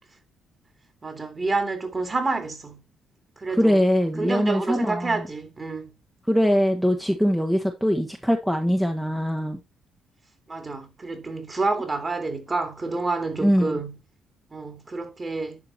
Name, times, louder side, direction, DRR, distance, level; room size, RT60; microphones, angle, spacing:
voice 1, 1.0-2.8 3.4-3.8 4.2-5.9 10.5-14.0 14.5-15.6, right 3 dB, 30° right, 2.9 m, -28 dB
voice 2, 3.5-5.1 6.3-9.6 13.4-13.8, equal, 5° right, 1.3 m, -22 dB
11.5 x 4.7 x 4.3 m
cardioid pair, 90°, 0 cm